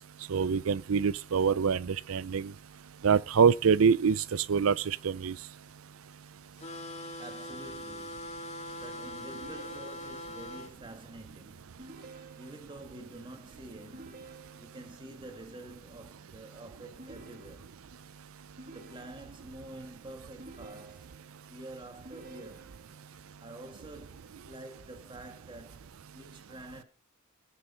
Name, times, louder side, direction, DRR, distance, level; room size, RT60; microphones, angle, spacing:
voice 1, 0.3-2.5 3.0-5.4, right 6 dB, 70° right, 0.5 m, -25 dB
sound 1, 6.6-10.7, left 1 dB, 30° left, 2.0 m, -42 dB
voice 2, 7.2-8.4 8.7-14.3 14.6-17.8 18.7-21.1 21.5-22.7 23.1-26.8, right 1 dB, 25° right, 2.0 m, -48 dB
sound 2, 9.3-10.4 11.8-12.8 13.9-15.0 17.0-18.0 18.6-19.5 20.4-21.4 22.0-23.1, right 3 dB, 40° right, 2.3 m, -51 dB
16.5 x 6.4 x 5.7 m
head